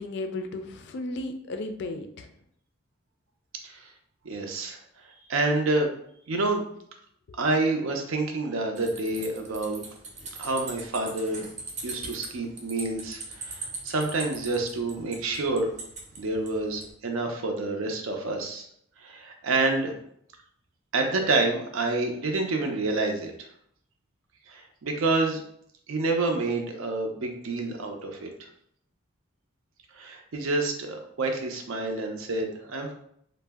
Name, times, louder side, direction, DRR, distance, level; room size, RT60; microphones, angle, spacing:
voice 1, 0.0-2.3, left 2 dB, 55° left, 7 dB, 0.3 m, -34 dB
voice 2, 4.2-4.8 5.3-5.9 6.3-6.6 7.4-9.8 10.4-11.4 11.8-15.7 16.2-18.7 19.0-19.9 20.9-23.3 24.5-25.4 25.9-28.3 29.9-32.9, right 2 dB, 80° right, 3 dB, 0.5 m, -28 dB
sound 1, 8.8-16.9, right 3 dB, 35° right, 0.6 m, -41 dB
2.6 x 2.0 x 3.4 m, 0.69 s
head